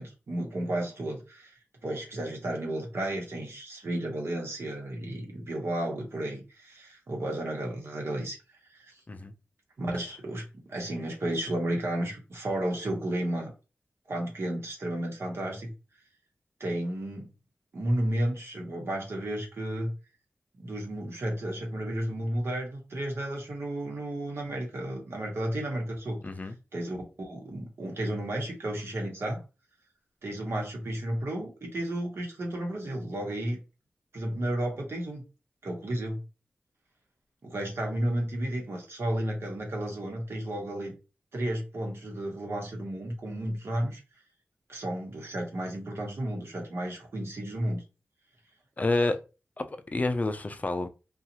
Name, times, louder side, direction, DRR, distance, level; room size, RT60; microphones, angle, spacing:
voice 1, 0.0-8.4 8.7-8.9 9.8-13.5 14.1-15.7 16.6-17.3 17.7-19.9 20.6-26.2 26.7-29.4 30.2-33.6 34.1-35.2 35.6-36.2 37.4-40.9 41.3-44.0 44.7-47.8, right 1 dB, 65° right, 1.0 m, -33 dB
voice 2, 26.2-26.5 48.8-49.2 49.6-50.9, left 2 dB, 35° left, 0.4 m, -29 dB
2.6 x 2.3 x 2.9 m
cardioid pair, 60°, 5 cm